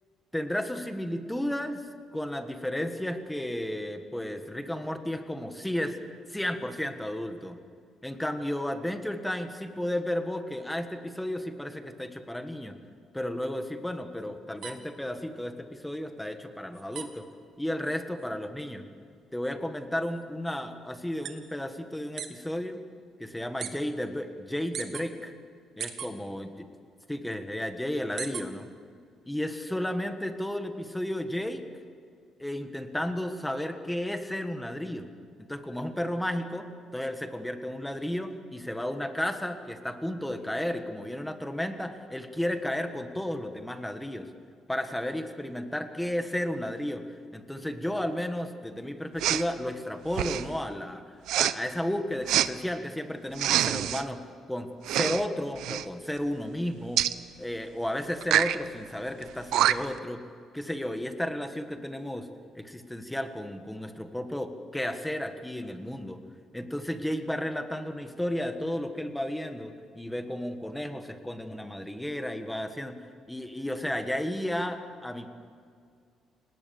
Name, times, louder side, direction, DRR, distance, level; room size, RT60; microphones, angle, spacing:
voice 1, 0.3-1.8 2.1-6.0 6.3-7.6 8.0-12.7 13.1-17.3 17.6-18.8 19.3-22.8 23.2-25.3 25.8-26.5 27.1-28.7 29.2-31.6 32.4-35.1 35.5-36.7 36.9-44.3 44.7-51.0 51.4-54.2 54.5-57.0 57.4-60.2 60.5-62.3 62.5-66.2 66.5-72.9 73.3-75.3, left 1 dB, 5° left, 7 dB, 1.4 m, -33 dB
sound 1, 14.6-22.4 22.7-23.7 24.0-25.1 25.5-26.7 27.0-28.7 29.1-30.3, right 8 dB, 50° right, 1.8 m, -42 dB
Respiratory sounds, 49.2-49.5 50.1-50.5 51.3-51.5 52.3-52.5 53.4-54.0 54.8-55.2 55.6-55.9 57.0-57.2 58.2-58.6 59.2-59.3 59.5-60.0, right 12 dB, 80° right, 0.8 m, -25 dB
29.0 x 19.0 x 7.1 m, 2.2 s
cardioid pair, 170°, 0 cm